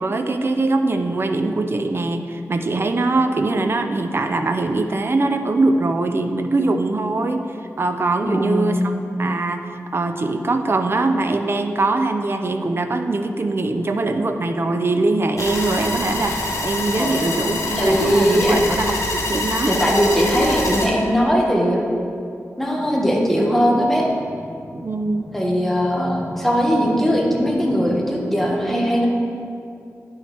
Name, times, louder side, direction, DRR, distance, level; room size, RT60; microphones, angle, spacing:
voice 1, 0.0-8.9 9.2-19.8 24.7-25.3, right 2 dB, 45° right, 7 dB, 0.5 m, -22 dB
voice 2, 8.2-8.9 16.9-17.2 17.8-18.6 19.7-21.8 22.6-24.1 25.3-29.1, equal, 5° left, -2 dB, 1.2 m, -19 dB
sound 1, 15.4-20.9, left 2 dB, 70° left, 1.2 m, -25 dB
sound 2, 22.8-28.5, left 1 dB, 45° left, 1.4 m, -39 dB
10.0 x 6.2 x 3.4 m, 2.5 s
wide cardioid pair, 105°, 6 cm